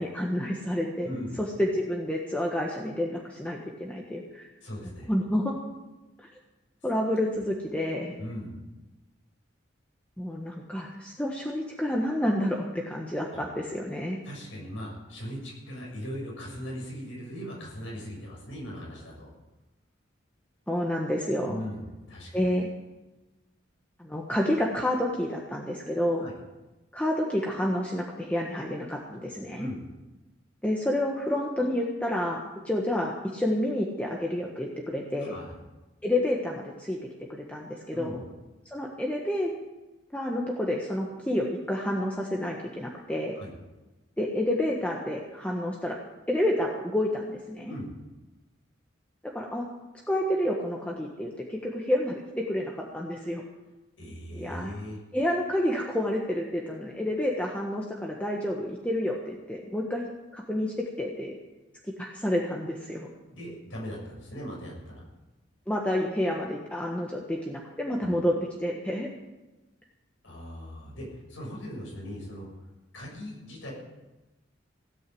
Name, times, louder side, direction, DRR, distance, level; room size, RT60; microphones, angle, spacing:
voice 1, 0.0-1.1 1.4-4.5 5.1-5.6 6.2-6.3 6.8-8.2 10.2-14.2 20.7-21.6 22.3-22.7 24.0-26.2 26.9-29.7 30.6-32.4 32.6-35.3 36.0-37.0 37.3-38.2 38.6-39.5 40.1-43.4 44.2-46.0 46.3-47.7 49.3-49.7 50.1-53.4 54.3-54.7 55.1-61.4 62.0-63.1 65.7-69.1, left 1 dB, 5° left, -1 dB, 1.3 m, -29 dB
voice 2, 1.0-1.4 4.6-5.1 8.2-8.5 14.2-19.3 21.5-22.5 26.2-26.3 29.6-29.8 35.2-35.5 37.9-38.2 43.3-43.5 47.6-47.9 54.0-55.0 63.3-65.0 67.9-68.1 70.2-72.5 72.9-73.7, equal, 80° left, -2 dB, 6.5 m, -39 dB
17.0 x 9.1 x 7.8 m, 1.1 s
head